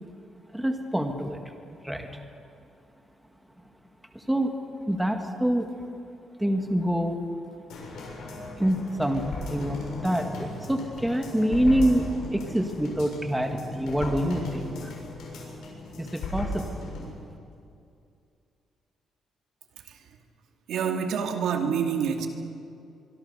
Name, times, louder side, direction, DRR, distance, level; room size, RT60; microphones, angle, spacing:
voice 1, 0.5-1.4 1.8-2.1 4.1-4.5 4.9-5.7 6.4-7.2 8.5-12.0 12.3-14.9 16.0-16.7, equal, 5° right, 4 dB, 1.8 m, -26 dB
sound 1, 7.7-17.1 17.5-17.6, left 1 dB, 80° left, 7.6 m, -37 dB
voice 2, 19.8-20.2 20.7-22.3, right 7 dB, 80° right, 4 dB, 2.4 m, -28 dB
25.0 x 24.0 x 6.8 m, 2.5 s
cardioid pair, 155°, 0 cm